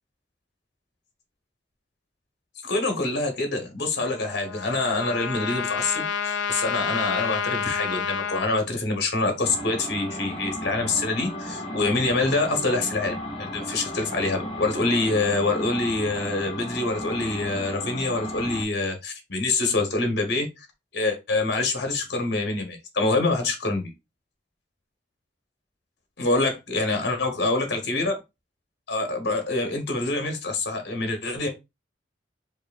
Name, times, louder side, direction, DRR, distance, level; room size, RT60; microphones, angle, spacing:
voice 1, 2.6-20.7 20.9-23.9 26.2-28.1 28.9-31.5, left 2 dB, 60° left, 5 dB, 1.0 m, -26 dB
Trumpet, 4.0-8.5, left 6 dB, 75° left, 0.4 m, -29 dB
sound 1, 9.4-18.6, left 1 dB, 30° left, 1.0 m, -34 dB
4.7 x 2.6 x 2.4 m, 0.23 s
head